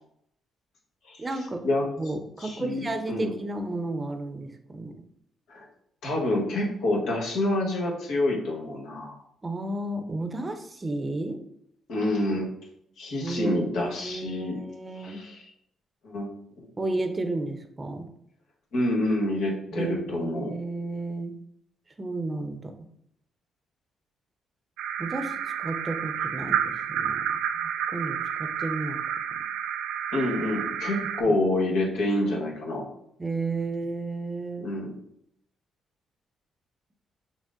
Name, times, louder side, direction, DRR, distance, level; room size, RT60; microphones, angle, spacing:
voice 1, 1.2-1.6 2.0-4.9 9.4-11.4 13.2-15.2 16.8-18.1 19.7-21.4 22.0-22.7 25.0-27.3 27.6-29.0 29.3-29.4 31.2-31.4 33.2-34.7, right 2 dB, 30° right, 7 dB, 0.6 m, -32 dB
voice 2, 2.4-3.3 5.5-5.6 6.0-9.1 11.9-12.5 13.0-14.6 15.0-15.5 16.0-16.3 18.7-20.5 30.1-32.8 34.6-34.9, left 1 dB, 75° left, -1 dB, 1.2 m, -27 dB
sound 1, 24.8-31.2, right 9 dB, 85° right, 0.3 m, -30 dB
6.1 x 2.0 x 3.7 m, 0.74 s
supercardioid pair, 65°, 0 cm